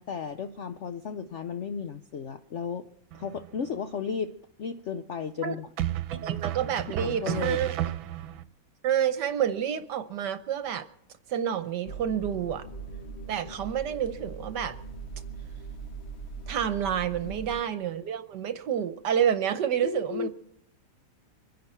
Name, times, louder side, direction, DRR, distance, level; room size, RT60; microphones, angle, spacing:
voice 1, 0.0-2.9 3.1-5.7 7.0-7.6 17.2-17.4 19.8-20.3, left 7 dB, 80° left, 10 dB, 0.6 m, -34 dB
sound 1, 3.1-3.7 5.8-8.4, right 12 dB, 85° right, 1.5 m, -32 dB
voice 2, 6.1-7.7 8.8-10.8 11.3-12.6 13.3-14.7 16.5-20.3, right 9 dB, 65° right, 11 dB, 1.3 m, -29 dB
sound 2, 11.8-17.6, right 4 dB, 40° left, 1.2 m, -41 dB
25.0 x 10.5 x 4.4 m, 0.73 s
omnidirectional pair, 2.2 m